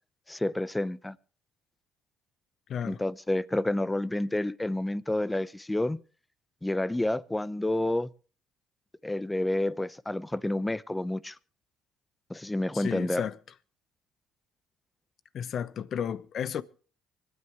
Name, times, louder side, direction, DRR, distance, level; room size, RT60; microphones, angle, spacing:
voice 1, 0.3-1.2 2.8-6.0 6.6-8.1 9.0-11.4 12.3-13.3, left 1 dB, 10° left, 0.7 m, -29 dB
voice 2, 12.7-13.4 15.3-16.6, left 8 dB, 55° left, 0.9 m, -33 dB
25.0 x 9.5 x 3.5 m
supercardioid pair, 75°, 0 cm